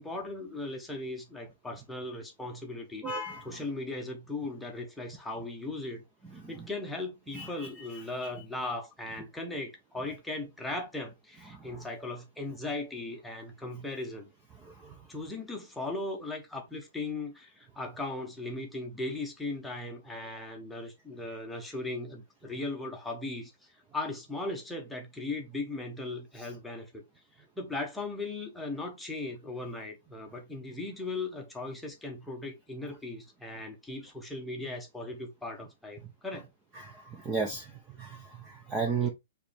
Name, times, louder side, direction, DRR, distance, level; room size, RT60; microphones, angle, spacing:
voice 1, 0.0-3.1 3.4-6.0 6.5-14.3 15.1-27.0 27.6-36.5 39.0-39.1, left 2 dB, 5° left, 0.9 m, -38 dB
voice 2, 3.0-3.4 7.3-7.7 36.8-37.7 38.0-39.1, right 4 dB, 15° right, 0.5 m, -33 dB
4.7 x 3.2 x 3.3 m
hypercardioid pair, 170°, 0 cm